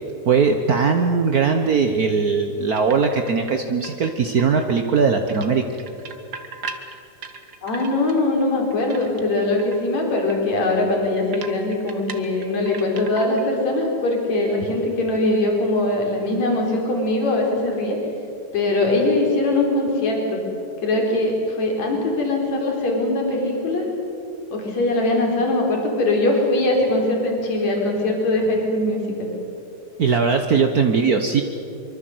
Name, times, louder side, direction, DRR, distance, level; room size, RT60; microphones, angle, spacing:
voice 1, 0.2-5.6 30.0-31.4, right 5 dB, 65° right, 5 dB, 0.9 m, -19 dB
sound 1, 2.8-3.5 3.8-5.0 5.3-8.2 8.6-9.3 9.6-9.9 10.3-10.4 10.6-10.7 11.3-13.6 13.8-14.2, right 5 dB, 40° right, 1.6 m, -37 dB
voice 2, 7.6-18.0 18.5-20.4 20.8-23.9 24.5-29.3, left 2 dB, 65° left, 0 dB, 5.5 m, -21 dB
24.5 x 24.5 x 8.0 m, 2.7 s
omnidirectional pair, 3.4 m